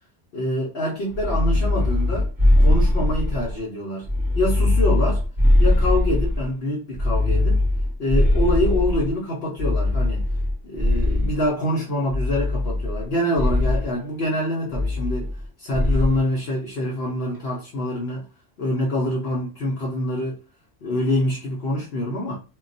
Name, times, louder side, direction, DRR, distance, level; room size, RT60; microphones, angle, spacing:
voice 1, 0.3-2.3 2.6-4.1 4.3-5.2 5.6-7.6 8.0-10.2 10.6-15.3 15.6-18.2 18.6-20.4 20.8-22.4, left 1 dB, 65° left, 0.9 m, -25 dB
sound 1, 1.1-3.6 4.0-6.5 6.9-9.1 9.6-11.5 12.1-13.1 13.4-13.9 14.7-15.5 15.7-16.2, left 1 dB, 20° right, 0.9 m, -20 dB
2.3 x 2.2 x 3.8 m
omnidirectional pair, 1.1 m